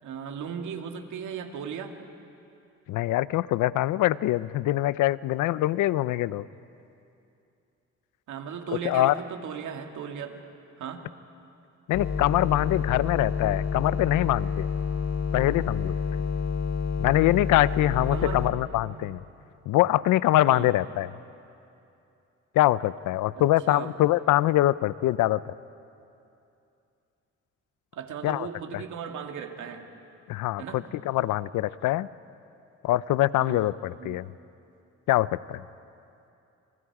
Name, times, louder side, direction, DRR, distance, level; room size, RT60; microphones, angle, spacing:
voice 1, 0.0-2.0 8.3-10.4 10.8-11.1 18.1-18.5 20.5-20.7 23.3-23.9 27.9-29.9 30.6-30.9 33.4-33.7 34.0-34.2, right 7 dB, 75° right, 4 dB, 2.2 m, -37 dB
voice 2, 2.9-6.4 8.8-9.1 11.9-14.7 15.3-16.0 17.0-19.2 19.7-21.1 22.5-25.4 28.2-28.5 30.3-32.1 32.8-34.3 35.1-35.6, left 15 dB, 85° left, 18 dB, 0.6 m, -24 dB
sound 1, 11.9-18.5, left 6 dB, 65° left, 2.5 m, -29 dB
30.0 x 27.5 x 4.9 m, 2.7 s
cardioid pair, 90°, 30 cm